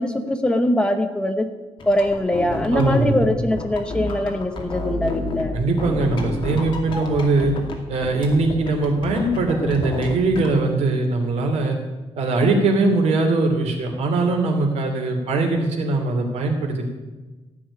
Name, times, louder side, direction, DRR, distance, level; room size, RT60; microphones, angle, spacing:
voice 1, 0.0-1.5 1.9-5.6, left 1 dB, 10° left, 6 dB, 0.9 m, -22 dB
sound 1, 1.8-5.5 5.8-10.5, left 2 dB, 50° left, 2.4 m, -30 dB
voice 2, 2.7-3.3 5.5-7.5 7.9-11.8 12.1-16.9, right 3 dB, 80° right, 3 dB, 2.8 m, -21 dB
14.5 x 6.3 x 9.7 m, 1.2 s
wide cardioid pair, 175°, 11 cm